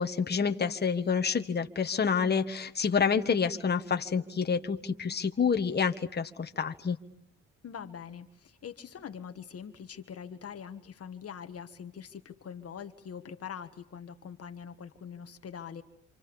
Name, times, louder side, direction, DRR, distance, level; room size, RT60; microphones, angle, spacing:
voice 1, 0.0-7.0, left 6 dB, 35° left, 6 dB, 1.7 m, -28 dB
voice 2, 7.6-15.8, left 7 dB, 50° left, 9 dB, 1.6 m, -43 dB
28.5 x 26.5 x 7.1 m, 0.70 s
cardioid pair, 90°, 30 cm